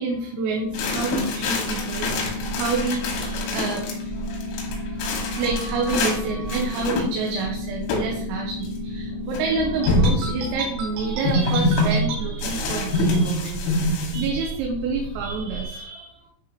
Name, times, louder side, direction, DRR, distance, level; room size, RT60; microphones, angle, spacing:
voice 1, 0.0-13.8 14.1-16.2, right 4 dB, 85° right, 0 dB, 3.6 m, -28 dB
sound 1, 0.6-10.6, left 4 dB, 15° right, 1.0 m, -33 dB
sound 2, 0.6-15.7, right 5 dB, 65° right, 2.9 m, -36 dB
sound 3, 0.7-3.9 4.3-6.2 6.5-7.4 7.9-8.1 8.4-8.5 9.3-9.4 9.9-10.3 11.2-11.9 12.4-14.3, left 2 dB, 90° left, 4.2 m, -25 dB
10.5 x 4.2 x 3.0 m, 0.68 s
omnidirectional pair, 5.9 m